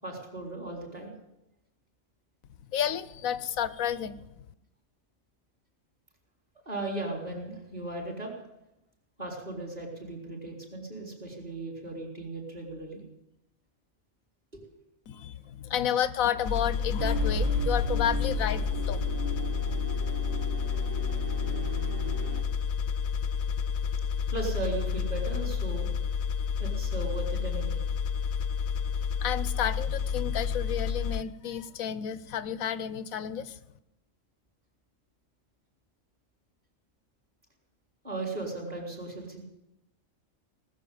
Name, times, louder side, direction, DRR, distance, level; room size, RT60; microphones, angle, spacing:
voice 1, 0.0-1.1 6.7-8.3 9.2-13.0 14.5-14.7 24.3-25.9 26.6-27.8 38.0-39.4, right 2 dB, 30° right, 0 dB, 3.9 m, -37 dB
voice 2, 2.7-4.2 15.1-19.0 29.2-33.6, left 9 dB, 90° left, 15 dB, 1.2 m, -31 dB
sound 1, 16.4-31.2, left 6 dB, 60° left, 0.9 m, -30 dB
sound 2, 17.0-22.4, equal, 75° right, 1.8 m, -34 dB
19.0 x 7.3 x 9.4 m, 0.89 s
omnidirectional pair, 1.4 m